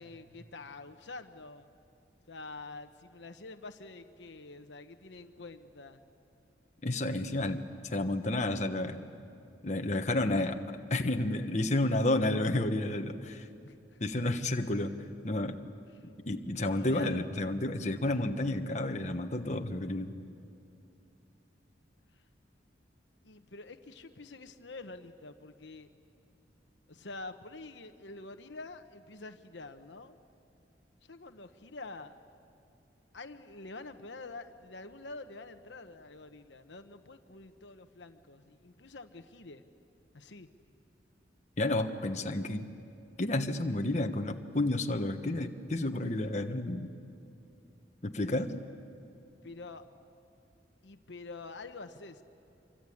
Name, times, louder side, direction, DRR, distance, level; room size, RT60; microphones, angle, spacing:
voice 1, 0.0-1.7 2.3-6.0 13.7-14.2 15.9-16.1 16.6-17.3 23.2-25.9 26.9-30.2 31.1-32.1 33.1-39.7 40.1-40.5 49.4-49.8 50.8-52.2, left 3 dB, 75° left, 8 dB, 1.1 m, -47 dB
voice 2, 6.8-9.0 9.6-10.6 10.9-13.4 14.0-14.9 15.2-15.6 16.3-20.1 41.6-42.7 43.2-46.9 48.0-48.5, left 1 dB, 40° left, 5 dB, 1.3 m, -31 dB
27.0 x 24.0 x 8.6 m, 2.6 s
head